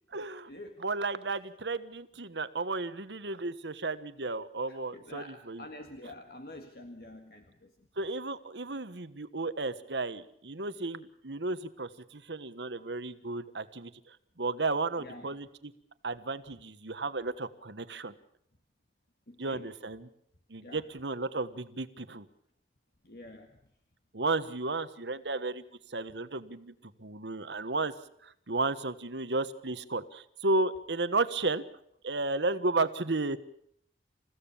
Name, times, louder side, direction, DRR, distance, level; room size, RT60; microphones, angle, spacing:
voice 1, 0.1-0.5 0.8-5.7 8.0-15.7 16.0-18.1 19.4-20.1 20.5-22.2 24.1-25.6 25.9-26.7 27.0-27.9 28.2-31.6 32.0-33.4, right 3 dB, 85° right, 13 dB, 1.4 m, -33 dB
voice 2, 4.7-7.7 15.0-15.3 19.3-19.7 20.6-20.8 23.0-23.6, left 1 dB, 60° left, 5 dB, 1.9 m, -47 dB
28.5 x 16.0 x 7.2 m, 0.70 s
head